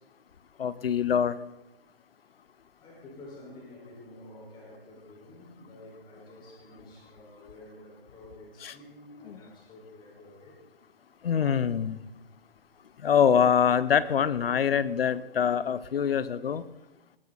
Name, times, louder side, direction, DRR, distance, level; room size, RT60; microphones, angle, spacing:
voice 1, 0.6-1.4 8.6-8.7 9.3-9.4 11.2-12.0 13.0-16.6, left 8 dB, 70° left, 16 dB, 1.0 m, -24 dB
voice 2, 2.8-10.6, left 1 dB, 15° left, -2 dB, 5.0 m, -49 dB
20.0 x 13.0 x 4.1 m, 1.0 s
hypercardioid pair, 155°, 30 cm